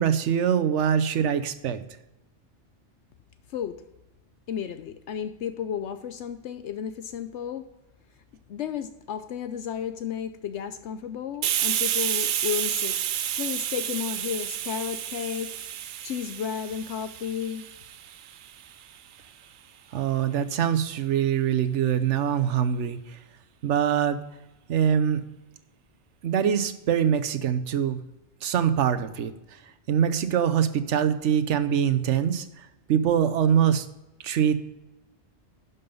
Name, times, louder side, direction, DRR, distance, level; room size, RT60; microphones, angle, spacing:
voice 1, 0.0-1.8 19.9-23.2 23.6-24.2 24.7-25.2 26.2-28.0 28.4-29.3 29.9-33.9 34.2-34.5, right 8 dB, 75° right, 10 dB, 1.1 m, -24 dB
voice 2, 4.5-7.6 8.5-17.7, left 8 dB, 75° left, 11 dB, 0.9 m, -33 dB
Hiss, 11.4-18.8, right 10 dB, 60° right, 0.5 m, -30 dB
11.0 x 5.5 x 5.2 m, 0.96 s
omnidirectional pair, 1.2 m